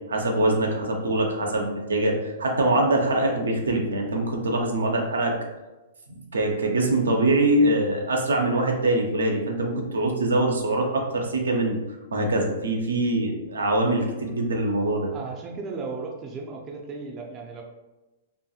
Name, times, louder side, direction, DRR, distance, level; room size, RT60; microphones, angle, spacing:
voice 1, 0.1-5.3 6.1-11.8 12.1-15.1, right 1 dB, 80° right, 1 dB, 0.5 m, -23 dB
voice 2, 15.1-17.6, right 4 dB, 25° right, 0 dB, 0.4 m, -35 dB
2.8 x 2.6 x 2.3 m, 1.1 s
hypercardioid pair, 110°, 0 cm